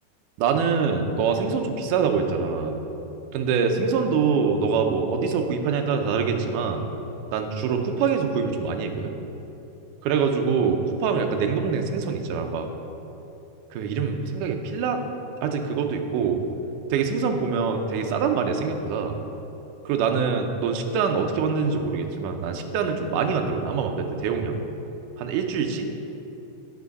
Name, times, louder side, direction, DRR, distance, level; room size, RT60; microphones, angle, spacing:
voice 1, 0.4-2.8 3.3-6.9 7.3-9.1 10.0-12.7 13.7-15.0 15.4-16.4 16.9-19.2 19.9-24.6 25.2-25.9, right 5 dB, 75° right, 4 dB, 2.2 m, -24 dB
10.5 x 8.6 x 4.1 m, 2.9 s
omnidirectional pair, 3.9 m